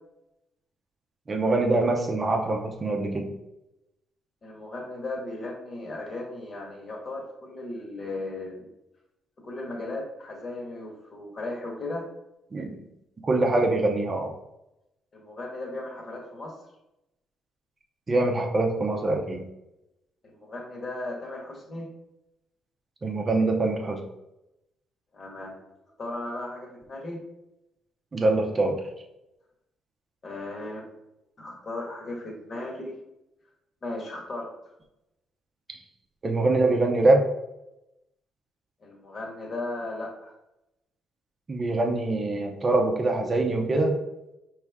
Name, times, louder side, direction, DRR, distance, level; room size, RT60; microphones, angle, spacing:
voice 1, 1.3-3.3 12.5-12.8 13.3-14.3 18.1-19.4 23.0-24.0 28.1-28.8 36.2-37.3 41.5-44.0, right 2 dB, 30° right, 3 dB, 0.6 m, -24 dB
voice 2, 4.4-8.7 9.4-12.1 15.1-16.5 20.2-21.9 25.1-25.6 26.0-27.2 30.2-30.9 31.4-33.0 33.8-34.5 38.8-40.3, left 2 dB, 40° left, 0 dB, 1.4 m, -36 dB
4.7 x 3.2 x 3.5 m, 0.90 s
cardioid pair, 100°, 0 cm